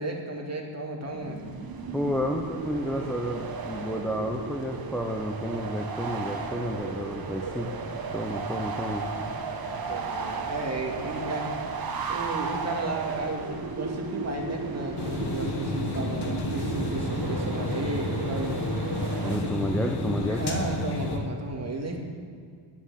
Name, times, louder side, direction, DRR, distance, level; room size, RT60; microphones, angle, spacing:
voice 1, 0.0-1.4 9.9-11.5 12.1-18.6 19.4-19.6 20.3-22.0, right 2 dB, 35° right, 0 dB, 2.3 m, -33 dB
sound 1, 1.0-19.4, right 4 dB, 50° right, 1.4 m, -34 dB
voice 2, 1.9-7.7 8.1-9.1 19.2-20.6, equal, ahead, 2 dB, 0.8 m, -31 dB
sound 2, 15.0-21.2, left 2 dB, 60° left, 1.8 m, -31 dB
11.0 x 7.4 x 9.2 m, 2.2 s
cardioid pair, 110°, 46 cm